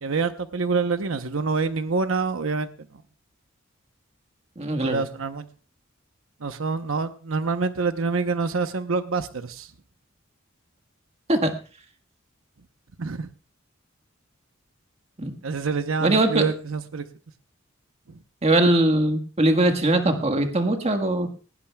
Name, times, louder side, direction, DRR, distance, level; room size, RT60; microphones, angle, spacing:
voice 1, 0.0-2.7 4.8-5.5 6.4-9.7 13.0-13.3 15.4-17.1 18.1-18.2, right 4 dB, 85° right, 9 dB, 0.9 m, -26 dB
voice 2, 4.6-5.0 11.3-11.5 15.2-15.3 16.0-16.5 18.4-21.3, right 1 dB, 30° right, 7 dB, 1.5 m, -21 dB
18.5 x 17.5 x 2.3 m, 0.36 s
head